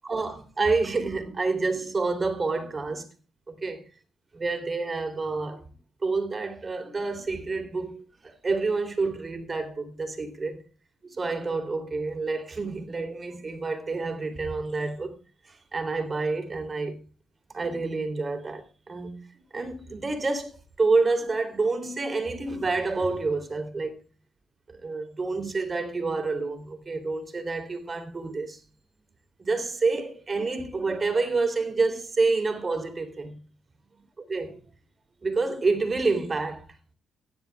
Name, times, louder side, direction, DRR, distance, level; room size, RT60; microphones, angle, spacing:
voice 1, 0.0-3.1 3.5-3.8 4.3-5.6 6.0-10.6 11.0-15.1 15.4-17.0 17.5-19.3 19.5-24.0 24.7-28.6 29.4-33.4 34.2-34.6 35.2-36.7, right 3 dB, 30° right, 3.3 m, -28 dB
16.0 x 10.5 x 3.5 m
cardioid pair, 90°, 0 cm